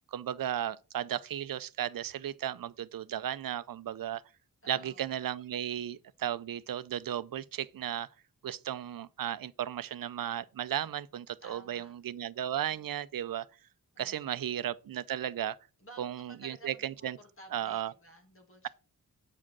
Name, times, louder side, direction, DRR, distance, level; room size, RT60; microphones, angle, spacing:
voice 1, 0.1-4.2 4.7-8.1 8.4-13.5 14.0-15.6 16.0-17.2 17.5-17.9, right 10 dB, 70° right, 0.5 m, -35 dB
voice 2, 4.6-5.0 11.4-11.9 13.9-14.5 15.8-18.7, right 1 dB, 35° left, 2.3 m, -54 dB
8.4 x 5.0 x 6.0 m
wide cardioid pair, 135°, 35 cm